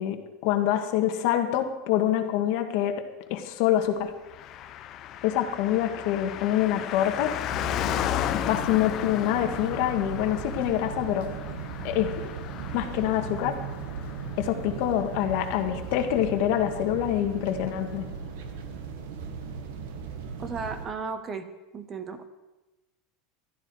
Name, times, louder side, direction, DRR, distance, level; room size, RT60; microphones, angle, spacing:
voice 1, 0.0-3.0 3.3-4.1 5.2-7.4 8.5-11.3 11.8-12.1 12.7-13.6 14.4-18.1, left 11 dB, 55° left, 5 dB, 1.7 m, -26 dB
Car passing by, 4.3-16.1 16.4-16.5, left 11 dB, 35° left, 0.6 m, -35 dB
sound 1, 7.5-20.9, right 5 dB, 75° right, 1.7 m, -37 dB
voice 2, 20.4-21.5 21.7-22.3, right 4 dB, 20° right, 10 dB, 1.0 m, -34 dB
15.5 x 12.5 x 4.8 m, 1.1 s
supercardioid pair, 170°, 0 cm